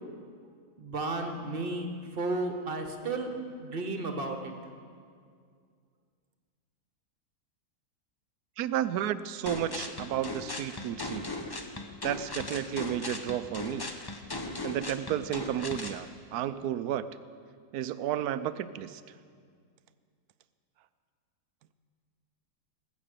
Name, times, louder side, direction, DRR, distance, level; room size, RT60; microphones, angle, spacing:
voice 1, 0.8-1.9 2.2-3.3 3.6-4.4, right 2 dB, 40° right, 5 dB, 1.3 m, -33 dB
voice 2, 8.6-11.3 12.0-13.9 14.6-17.1 17.7-19.0, right 11 dB, 85° right, 14 dB, 1.1 m, -32 dB
sound 1, 9.5-16.0, left 2 dB, 25° left, 0.6 m, -38 dB
19.0 x 8.4 x 6.7 m, 2.1 s
omnidirectional pair, 1.6 m